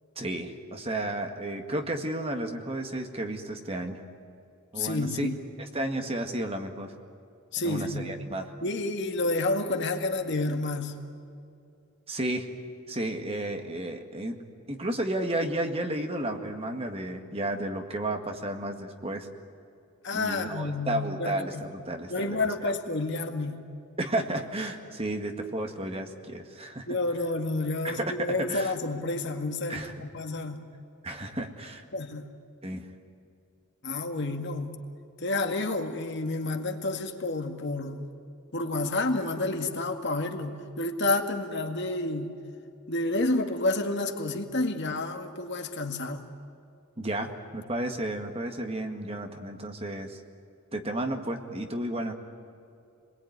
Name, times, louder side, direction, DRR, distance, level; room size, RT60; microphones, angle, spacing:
voice 1, 0.2-4.0 4.7-5.3 5.6-6.9 7.6-8.5 12.1-12.5 12.9-14.4 14.7-19.3 20.1-22.7 24.0-26.9 27.8-28.7 29.7-29.9 31.0-31.8 32.6-32.9 47.0-50.2 50.7-52.1, right 1 dB, 25° right, 4 dB, 1.9 m, -32 dB
voice 2, 4.8-5.4 7.5-8.1 8.6-10.9 20.0-21.6 22.1-23.6 26.9-30.7 31.9-32.3 33.8-34.7 35.2-38.0 38.5-42.3 42.9-46.2, left 2 dB, 55° left, 5 dB, 2.0 m, -30 dB
28.5 x 21.5 x 9.5 m, 2.6 s
head